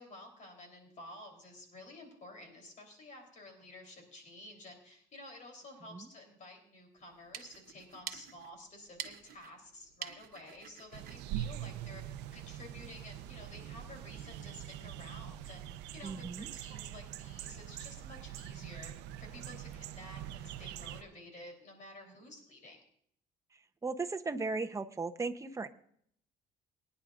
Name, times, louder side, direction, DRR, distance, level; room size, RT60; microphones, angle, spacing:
voice 1, 0.0-15.6 15.9-18.9 19.2-22.8, left 1 dB, 50° left, 3 dB, 3.6 m, -52 dB
sound 1, 7.0-12.3, right 9 dB, 60° right, 1.1 m, -49 dB
sound 2, 10.9-21.0, right 11 dB, 90° right, 0.6 m, -43 dB
voice 2, 16.0-16.5 23.8-25.7, right 3 dB, 20° right, 7 dB, 0.8 m, -36 dB
23.0 x 10.0 x 2.5 m, 0.66 s
cardioid pair, 110°, 17 cm